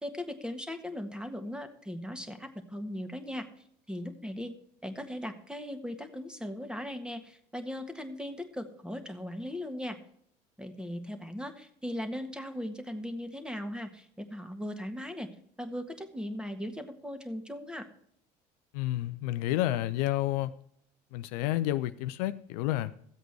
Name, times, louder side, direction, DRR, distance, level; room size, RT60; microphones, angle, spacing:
voice 1, 0.0-3.5 3.9-4.6 4.8-10.0 10.6-15.3 15.6-17.9, left 1 dB, 5° right, 8 dB, 1.6 m, -38 dB
voice 2, 18.7-20.5 21.1-22.9, left 15 dB, 70° left, 12 dB, 0.5 m, -30 dB
13.5 x 8.0 x 4.7 m, 0.68 s
hypercardioid pair, 65°, 21 cm